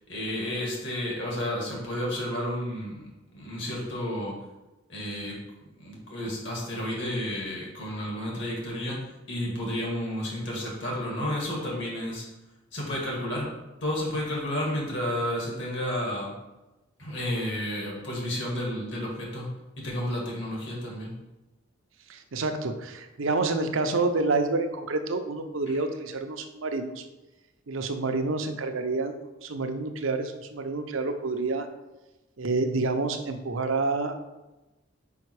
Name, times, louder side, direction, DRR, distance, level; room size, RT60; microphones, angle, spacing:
voice 1, 0.1-4.3 4.9-5.4 5.8-9.0 9.3-12.2 12.7-13.5 13.8-16.3 17.0-19.5 19.8-21.1 25.7-25.8, left 1 dB, 60° left, -3 dB, 2.2 m, -31 dB
voice 2, 22.1-27.1 27.7-29.1 29.4-31.7 32.4-34.1, right 3 dB, 80° right, 6 dB, 0.7 m, -28 dB
5.6 x 5.2 x 4.8 m, 1.1 s
head